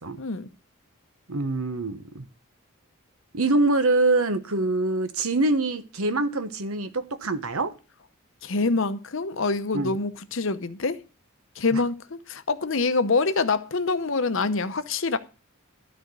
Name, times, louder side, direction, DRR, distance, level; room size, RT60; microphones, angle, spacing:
voice 1, 0.2-0.5 8.4-11.0 11.6-15.2, left 3 dB, 60° left, 0.8 m, -25 dB
voice 2, 1.3-2.2 3.3-7.7 9.7-10.0 11.7-11.8, right 2 dB, 75° right, 1.1 m, -24 dB
12.5 x 4.3 x 7.9 m
head